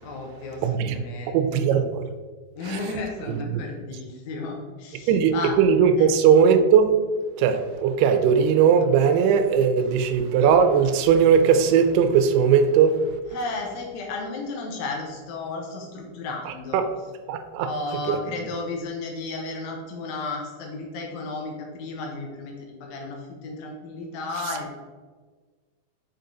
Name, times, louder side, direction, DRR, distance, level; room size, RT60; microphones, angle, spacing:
voice 1, 0.0-1.6 2.5-5.5 6.0-6.1 13.3-16.8 17.6-24.8, left 3 dB, 90° left, 1.5 m, -33 dB
voice 2, 0.6-1.0 1.3-2.1 2.7-2.8 3.3-3.6 5.1-6.9 7.4-13.0 16.5-16.9 17.3-17.7 18.1-18.2, right 7 dB, 90° right, 2.6 m, -19 dB
6.5 x 4.5 x 3.9 m
omnidirectional pair, 4.5 m